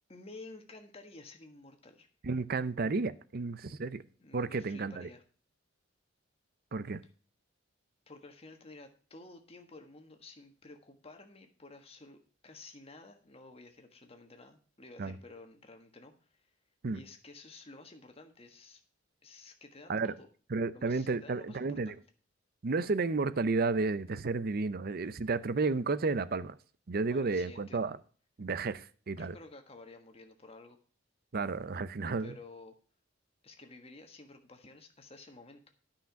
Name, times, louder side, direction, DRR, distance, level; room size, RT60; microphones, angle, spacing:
voice 1, 0.1-2.1 4.2-5.2 8.1-16.5 16.9-18.8 19.2-20.3 20.7-22.0 27.1-27.9 29.1-30.8 32.2-32.7 33.4-35.6, left 2 dB, 30° left, 1.4 m, -52 dB
voice 2, 2.2-4.0 4.3-5.1 6.7-7.0 15.0-15.1 16.8-17.0 19.9-20.1 20.5-21.9 22.6-26.6 26.9-28.0 28.4-29.4 31.3-32.3, right 3 dB, 50° right, 0.6 m, -32 dB
10.0 x 5.8 x 5.7 m
head